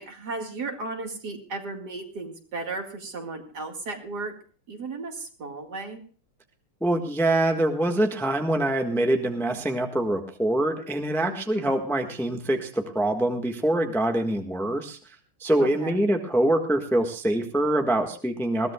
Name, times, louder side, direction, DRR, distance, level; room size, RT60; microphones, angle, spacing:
voice 1, 0.0-4.3 4.7-6.0 11.2-11.7 15.6-16.0, right 3 dB, 50° right, 4 dB, 2.7 m, -35 dB
voice 2, 6.8-15.0 15.4-18.7, right 1 dB, ahead, 4 dB, 1.1 m, -24 dB
21.0 x 17.0 x 2.3 m, 0.40 s
omnidirectional pair, 2.3 m